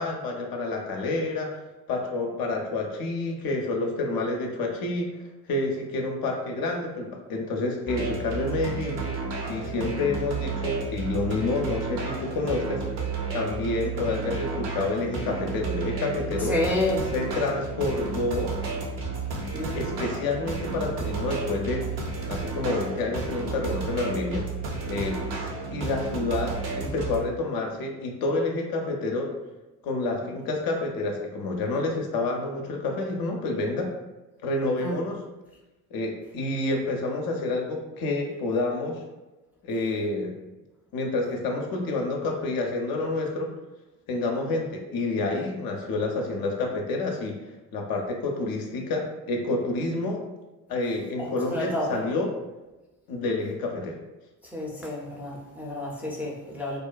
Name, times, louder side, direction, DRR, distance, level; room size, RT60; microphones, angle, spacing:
voice 1, 0.0-1.5 1.9-5.1 5.4-9.0 9.5-12.8 13.3-16.6 17.1-18.6 19.7-21.8 22.3-24.5 24.9-25.2 25.7-29.3 29.8-33.9 34.4-35.2 35.9-39.0 39.6-40.3 40.9-43.5 44.1-47.4 47.7-50.2 50.7-52.3 53.1-54.0, left 2 dB, 55° left, 2 dB, 0.5 m, -28 dB
sound 1, 7.9-27.2, right 4 dB, 55° right, 0.7 m, -32 dB
voice 2, 16.5-17.1 19.5-19.9 34.8-35.0 51.2-51.9 54.5-56.8, left 1 dB, 5° right, -4 dB, 0.5 m, -29 dB
2.5 x 2.1 x 2.4 m, 1.1 s
hypercardioid pair, 55°, 44 cm